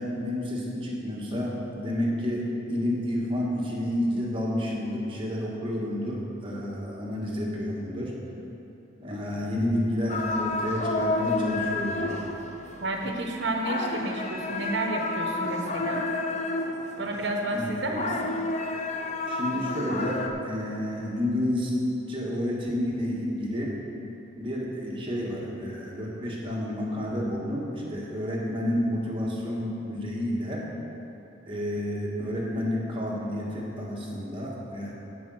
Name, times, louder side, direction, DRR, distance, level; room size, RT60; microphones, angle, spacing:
voice 1, 0.0-8.1 9.0-12.2 17.5-17.7 19.3-21.7 22.1-23.7 24.3-30.6 31.4-34.9, left 1 dB, 25° right, -4 dB, 1.6 m, -30 dB
sound 1, 10.1-17.2 17.5-20.3, left 2 dB, 35° left, 0.6 m, -30 dB
voice 2, 12.8-16.0 17.0-18.4, right 1 dB, 60° right, 1 dB, 1.2 m, -31 dB
11.0 x 5.2 x 7.7 m, 3.0 s
head